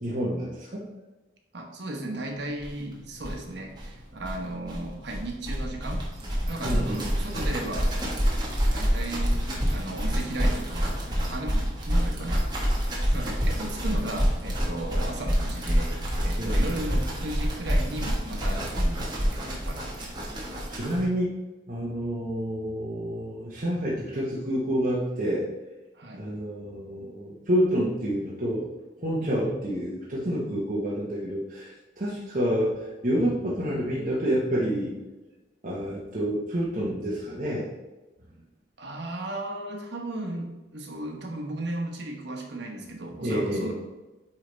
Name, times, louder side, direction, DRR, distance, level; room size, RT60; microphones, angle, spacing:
voice 1, 0.0-0.8 6.6-7.4 16.4-16.5 20.7-21.3 21.7-25.5 26.2-28.7 29.0-34.9 35.6-37.7 43.2-43.7, equal, 45° right, -6 dB, 1.1 m, -28 dB
voice 2, 1.5-6.0 6.5-8.1 8.7-12.4 13.1-19.9 20.4-20.7 25.9-26.2 29.2-29.5 38.8-43.7, right 1 dB, 75° right, 1 dB, 1.2 m, -36 dB
sound 1, 2.6-2.7 2.9-3.0 3.2-21.0, equal, 25° right, 1.3 m, -27 dB
8.6 x 3.4 x 4.0 m, 1.1 s
head